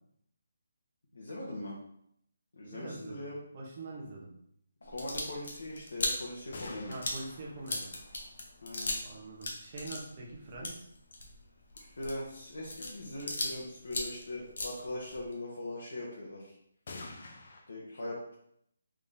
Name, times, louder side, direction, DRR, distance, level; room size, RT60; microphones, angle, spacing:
voice 1, 1.1-1.7 2.5-3.4 4.8-7.0 8.6-9.0 11.7-16.6 17.7-18.2, left 1 dB, 80° left, -5 dB, 1.0 m, -41 dB
voice 2, 2.6-3.2 3.5-4.3 6.9-7.9 9.0-10.9, right 2 dB, 25° right, -3 dB, 0.7 m, -44 dB
sound 1, 4.8-9.1 9.4-13.6 13.8-15.3, left 2 dB, 60° left, 0.8 m, -38 dB
sound 2, 6.5-9.4 13.0-13.1 13.4-13.5 13.8-14.3 16.9-17.6, left 3 dB, 40° left, 0.5 m, -49 dB
3.5 x 3.5 x 2.6 m, 0.72 s
hypercardioid pair, 180°, 0 cm